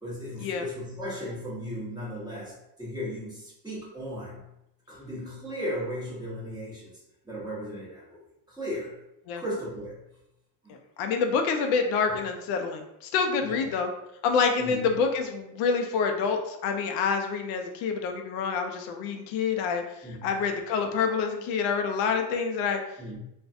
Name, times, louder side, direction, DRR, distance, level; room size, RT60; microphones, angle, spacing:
voice 1, 0.0-4.5 4.9-8.2 8.5-9.0 9.4-10.0 10.6-10.8 12.1-12.2 13.4-13.7 14.6-14.9 20.0-20.4 23.0-23.2, equal, 10° right, -7 dB, 0.9 m, -36 dB
voice 2, 11.0-13.9 14.2-22.8, left 5 dB, 85° left, 4 dB, 0.5 m, -27 dB
2.4 x 2.2 x 2.5 m, 0.84 s
cardioid pair, 115°, 48 cm